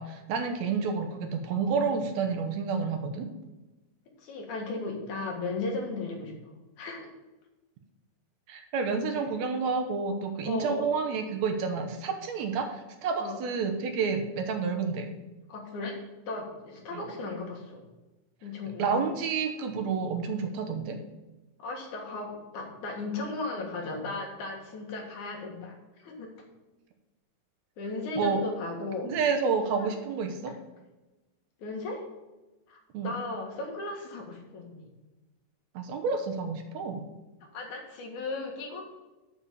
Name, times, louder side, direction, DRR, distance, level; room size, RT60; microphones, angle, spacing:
voice 1, 0.0-3.3 8.5-15.1 16.9-17.0 18.8-21.0 28.2-28.4 29.0-30.5 32.9-33.1 35.8-37.1, right 5 dB, 70° right, 6 dB, 2.1 m, -29 dB
voice 2, 4.2-7.1 10.4-10.9 13.2-13.4 15.5-15.9 16.3-17.8 18.4-18.9 21.6-26.3 27.8-29.1 29.8-29.9 31.6-32.0 32.7-34.8 37.5-38.8, left 2 dB, 75° left, 1 dB, 3.2 m, -36 dB
7.1 x 7.1 x 6.8 m, 1.1 s
omnidirectional pair, 3.5 m